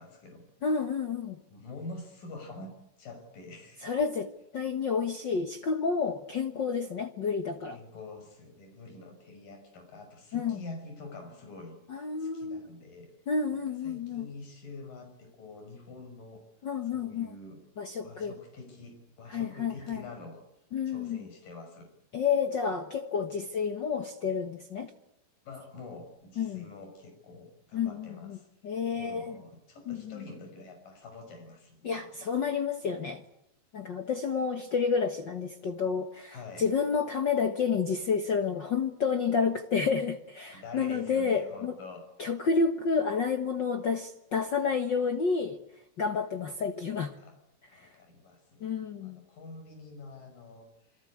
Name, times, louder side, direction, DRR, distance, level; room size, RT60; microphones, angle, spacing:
voice 1, 0.0-0.5 1.5-4.0 7.7-11.8 12.2-13.1 13.5-16.4 16.9-17.6 18.0-20.4 20.9-21.9 25.4-28.5 28.9-32.2 36.3-36.7 40.5-42.1 47.2-47.4 47.7-51.1, left 3 dB, 85° left, 5 dB, 7.8 m, -46 dB
voice 2, 0.6-1.4 3.8-4.3 4.5-7.8 10.3-10.6 11.9-12.7 13.3-14.3 16.6-17.4 17.8-18.3 19.3-20.0 20.7-21.2 22.1-24.9 26.4-26.7 27.7-28.4 28.6-29.3 29.9-30.2 31.8-33.2 33.7-41.8 42.2-45.6 46.0-47.1 47.7-47.9 48.6-49.2, left 5 dB, 50° left, 7 dB, 1.3 m, -30 dB
28.0 x 23.5 x 8.6 m, 0.82 s
omnidirectional pair, 3.8 m